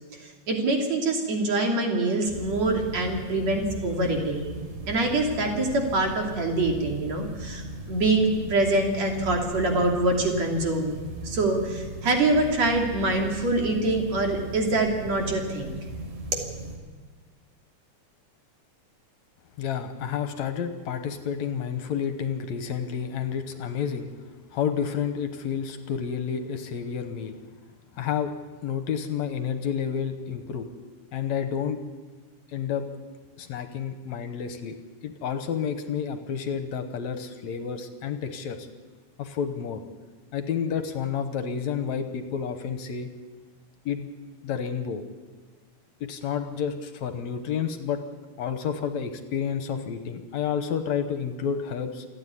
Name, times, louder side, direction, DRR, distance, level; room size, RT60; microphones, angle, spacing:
voice 1, 0.5-4.5 4.9-10.9 11.2-15.8, right 2 dB, 60° right, 1 dB, 4.1 m, -25 dB
sound 1, 2.3-16.8, right 2 dB, 75° right, 4.5 m, -38 dB
voice 2, 19.6-24.1 24.5-27.4 28.0-28.3 28.6-30.7 31.1-31.8 32.5-32.9 33.4-34.8 35.0-38.7 39.2-39.8 40.3-43.1 43.9-44.1 44.4-45.0 46.0-48.0 48.4-52.1, left 7 dB, 70° left, 8 dB, 2.3 m, -30 dB
28.0 x 9.8 x 9.8 m, 1.5 s
omnidirectional pair, 3.5 m